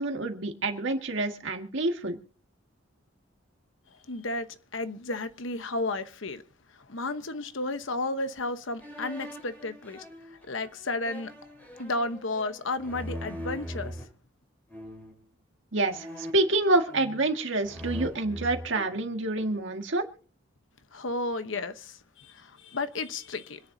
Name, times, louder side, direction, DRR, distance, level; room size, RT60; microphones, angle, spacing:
voice 1, 0.0-2.2 15.7-16.1 16.3-20.1, right 2 dB, 65° right, 1.8 m, -27 dB
voice 2, 4.1-6.4 6.7-10.0 10.3-11.3 11.8-14.0 20.9-23.6, left 2 dB, 65° left, 1.0 m, -33 dB
sound 1, 8.8-14.0 14.7-15.2 15.9-17.3 17.6-19.6, equal, 10° left, 4.2 m, -41 dB
26.0 x 10.0 x 2.7 m
head